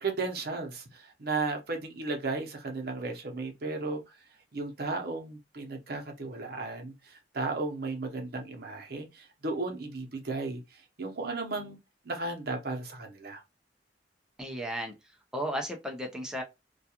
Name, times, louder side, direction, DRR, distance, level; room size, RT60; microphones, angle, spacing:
voice 1, 0.0-4.0 4.5-11.8 12.0-13.4, right 3 dB, 60° right, 0.7 m, -35 dB
voice 2, 14.4-14.9 15.3-16.4, equal, 5° right, 0.4 m, -34 dB
2.3 x 2.3 x 2.8 m
head